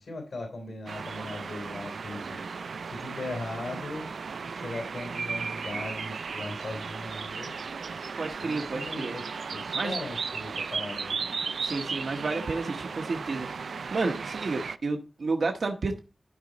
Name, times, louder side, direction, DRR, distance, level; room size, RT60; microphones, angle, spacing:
voice 1, 0.0-2.4 2.9-4.1 4.5-7.5 8.4-9.2 9.5-11.2, left 2 dB, 80° left, 3 dB, 3.0 m, -38 dB
sound 1, 0.9-14.8, right 5 dB, 85° right, 0.4 m, -35 dB
voice 2, 8.2-9.2 9.7-10.0 11.6-13.5 13.9-16.0, right 3 dB, 70° right, 3 dB, 0.9 m, -31 dB
12.5 x 5.1 x 3.9 m, 0.33 s
wide cardioid pair, 105°, 0 cm